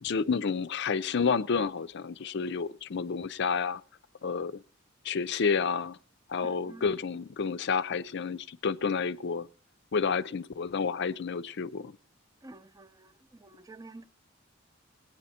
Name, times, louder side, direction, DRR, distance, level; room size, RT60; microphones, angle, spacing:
voice 1, 0.0-3.8 4.2-4.6 5.0-6.0 6.3-9.5 9.9-12.0, left 5 dB, 55° left, 0.5 m, -30 dB
voice 2, 6.4-7.0 12.4-13.1 13.4-14.1, right 2 dB, 15° right, 0.5 m, -48 dB
18.5 x 9.1 x 4.2 m
head